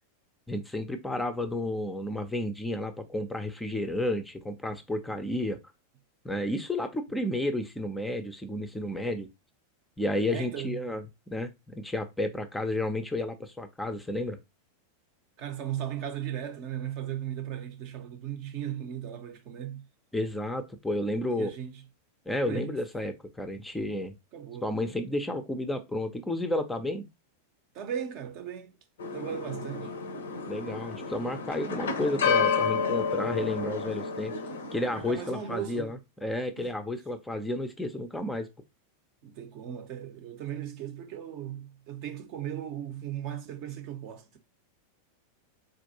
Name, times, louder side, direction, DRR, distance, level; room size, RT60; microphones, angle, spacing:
voice 1, 0.5-5.6 6.2-9.3 10.0-14.4 20.1-21.5 22.3-24.1 24.6-27.1 29.7-29.9 30.5-34.3 34.7-38.5, left 1 dB, 5° left, 0.5 m, -32 dB
voice 2, 10.3-10.8 15.4-19.8 21.3-21.7 22.5-22.8 24.3-24.7 27.7-28.8 29.1-29.9 34.8-35.9 36.6-36.7 39.2-44.4, right 10 dB, 45° right, 0.6 m, -37 dB
sound 1, 29.0-35.5, left 5 dB, 65° left, 0.5 m, -31 dB
4.0 x 2.5 x 2.7 m
figure-of-eight pair, 90°, 0 cm